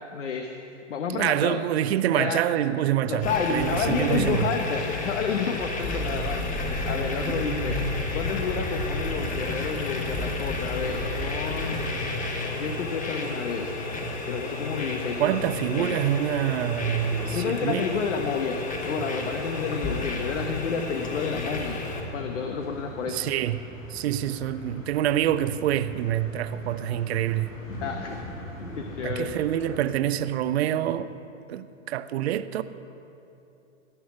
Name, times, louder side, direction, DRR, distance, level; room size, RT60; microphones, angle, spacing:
voice 1, 0.1-0.5 0.9-1.6 2.1-2.4 3.0-6.4 6.9-7.8 8.1-13.7 14.3-15.4 15.8-16.0 17.3-21.9 22.1-23.3 27.8-28.2 28.8-29.3, left 5 dB, 70° left, 1.2 m, -30 dB
voice 2, 1.1-4.5 7.3-7.4 15.2-17.9 23.1-23.6 23.9-27.5 29.0-31.1 31.5-32.6, right 11 dB, 55° right, 0.7 m, -26 dB
sound 1, 3.2-22.0, left 2 dB, 20° left, 1.6 m, -31 dB
sound 2, 10.5-30.0, left 1 dB, 85° left, 2.2 m, -42 dB
18.0 x 6.2 x 8.4 m
hypercardioid pair, 115°, 38 cm